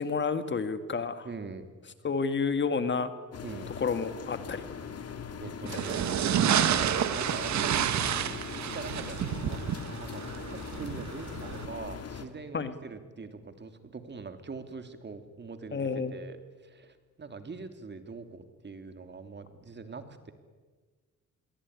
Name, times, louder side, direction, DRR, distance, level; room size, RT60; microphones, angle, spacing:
voice 1, 0.0-1.3 2.0-3.1 3.8-4.6 5.7-5.9 6.6-6.7 12.5-12.8 15.7-16.1, left 5 dB, 40° left, 10 dB, 2.0 m, -30 dB
voice 2, 1.2-1.6 3.4-3.7 5.1-7.9 8.5-9.6 10.0-20.3, right 4 dB, 35° right, 8 dB, 3.2 m, -43 dB
sound 1, 3.3-12.3, left 7 dB, 55° left, 2.8 m, -41 dB
sound 2, 5.7-11.7, right 9 dB, 65° right, 1.9 m, -29 dB
26.0 x 22.5 x 9.7 m, 1.4 s
cardioid pair, 90°, 30 cm